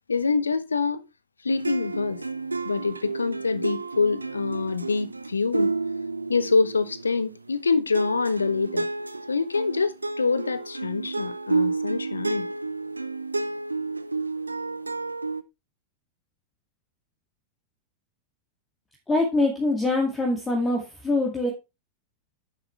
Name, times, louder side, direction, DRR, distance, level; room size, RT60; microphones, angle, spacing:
voice 1, 0.1-1.0 1.4-2.2 2.6-5.7 6.3-8.9 9.3-12.5, left 4 dB, 75° left, 0.8 m, -25 dB
sound 1, 1.5-7.6 7.9-15.4, right 3 dB, 80° right, 0.6 m, -31 dB
voice 2, 19.1-21.5, left 2 dB, 15° left, 2.2 m, -24 dB
9.6 x 7.5 x 3.3 m
figure-of-eight pair, 90°, 0 cm